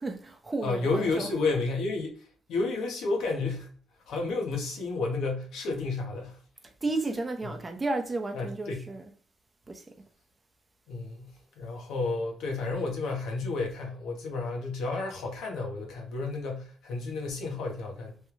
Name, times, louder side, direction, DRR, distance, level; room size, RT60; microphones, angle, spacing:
voice 1, 0.0-1.3 6.6-9.0 9.7-9.8, right 2 dB, 25° right, 0.6 m, -33 dB
voice 2, 0.6-3.7 4.1-6.4 8.3-8.8 10.9-18.2, left 3 dB, 85° left, 0.9 m, -31 dB
3.2 x 2.3 x 3.0 m
cardioid pair, 90°, 0 cm